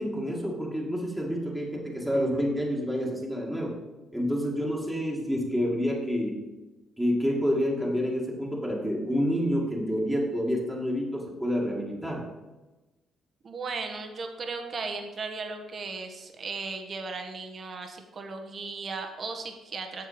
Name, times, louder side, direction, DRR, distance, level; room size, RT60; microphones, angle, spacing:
voice 1, 0.0-3.8 4.1-6.4 7.0-12.3, equal, ahead, -3 dB, 2.0 m, -28 dB
voice 2, 13.4-20.1, right 4 dB, 45° right, 4 dB, 1.3 m, -36 dB
8.1 x 6.7 x 5.1 m, 1.1 s
cardioid pair, 90°, 0 cm